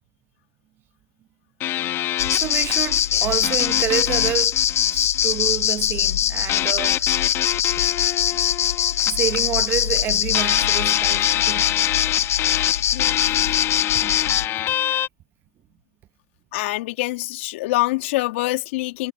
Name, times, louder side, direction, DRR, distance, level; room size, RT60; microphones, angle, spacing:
sound 1, 1.6-5.5 6.5-10.0 10.3-15.1, left 13 dB, 30° left, 1.6 m, -26 dB
sound 2, 2.2-14.5, left 10 dB, 85° left, 0.7 m, -22 dB
voice 1, 2.2-4.6 4.9-7.2 9.0-11.7 13.9-14.3 14.7-15.0, right 12 dB, 30° right, 1.3 m, -29 dB
voice 2, 16.5-19.1, left 19 dB, 55° left, 2.4 m, -25 dB
hypercardioid pair, 135°, 8 cm